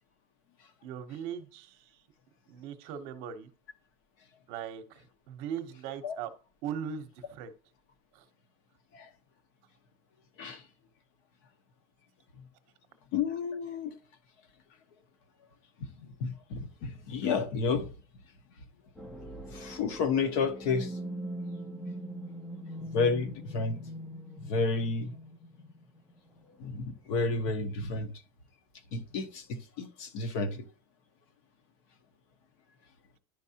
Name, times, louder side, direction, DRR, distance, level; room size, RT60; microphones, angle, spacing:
voice 1, 0.8-1.9 2.5-3.5 4.5-6.3 6.6-7.5 8.1-8.2, right 8 dB, 45° right, 0.8 m, -39 dB
voice 2, 13.1-13.9 16.0-17.9 19.5-20.9 22.9-23.8 24.5-25.1 26.6-28.1 28.9-29.4 29.8-30.6, left 4 dB, 55° left, 1.0 m, -31 dB
sound 1, 19.0-26.7, equal, 5° left, 0.4 m, -42 dB
10.5 x 4.6 x 2.8 m
cardioid pair, 175°, 19 cm